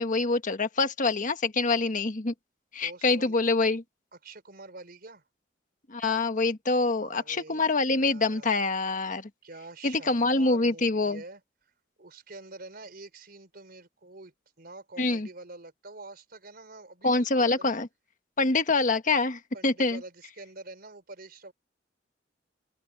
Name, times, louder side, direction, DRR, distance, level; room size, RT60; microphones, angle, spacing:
voice 1, 0.0-2.3 2.7-3.8 5.9-9.3 9.8-11.2 15.0-15.3 17.0-17.9 18.4-20.0, left 3 dB, 45° left, 1.4 m, -25 dB
voice 2, 2.8-3.4 4.2-5.2 6.9-8.6 9.4-11.4 12.0-17.7 19.5-21.5, right 2 dB, 55° right, 4.6 m, -46 dB
open air
head